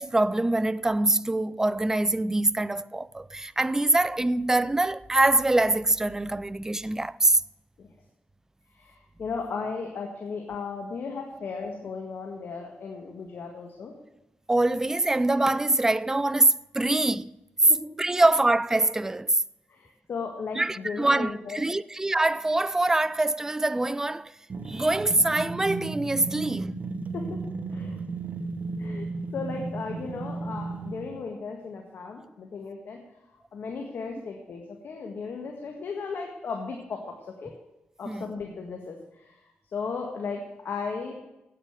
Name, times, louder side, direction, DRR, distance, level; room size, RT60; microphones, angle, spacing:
voice 1, 0.0-7.4 14.5-17.4 18.0-19.4 20.5-24.4 24.6-26.7 38.1-38.2, right 2 dB, 15° right, 0.4 m, -24 dB
voice 2, 8.7-13.9 17.7-17.8 18.1-18.2 19.7-21.6 27.1-27.4 27.7-28.0 28.8-29.1 29.3-33.0 33.3-37.5 38.0-41.2, left 5 dB, 65° left, 1.8 m, -36 dB
sound 1, 24.5-31.2, right 3 dB, 45° right, 0.9 m, -34 dB
9.1 x 8.8 x 9.0 m
cardioid pair, 80°, 4 cm